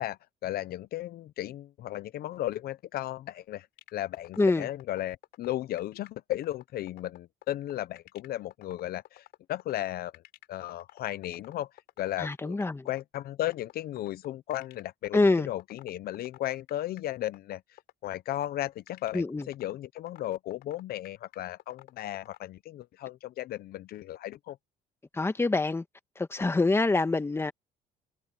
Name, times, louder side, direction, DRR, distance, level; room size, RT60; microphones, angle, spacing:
voice 1, 0.0-3.7 3.9-10.2 10.5-11.7 12.0-12.6 12.8-17.6 18.0-24.6, left 14 dB, 65° left, 0.7 m, -35 dB
sound 1, 3.8-22.5, left 15 dB, 80° left, 4.3 m, -51 dB
voice 2, 4.4-4.7 12.2-12.9 15.1-15.5 19.1-19.5 25.1-25.8 26.2-27.5, left 3 dB, 15° left, 1.3 m, -25 dB
cardioid pair, 110°, 17 cm